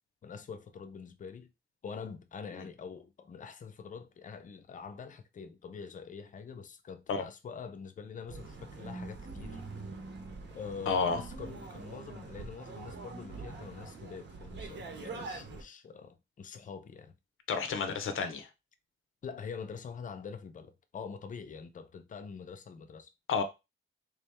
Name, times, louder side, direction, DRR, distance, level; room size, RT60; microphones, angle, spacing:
voice 1, 0.2-1.5 1.8-9.6 10.5-17.1 19.2-23.1, left 6 dB, 40° left, 0.5 m, -45 dB
sound 1, 8.3-15.6, right 3 dB, 65° right, 0.8 m, -44 dB
voice 2, 10.9-11.2 17.5-18.5 23.3-23.4, left 5 dB, 90° left, 0.7 m, -30 dB
3.7 x 2.9 x 3.4 m
wide cardioid pair, 155°, 20 cm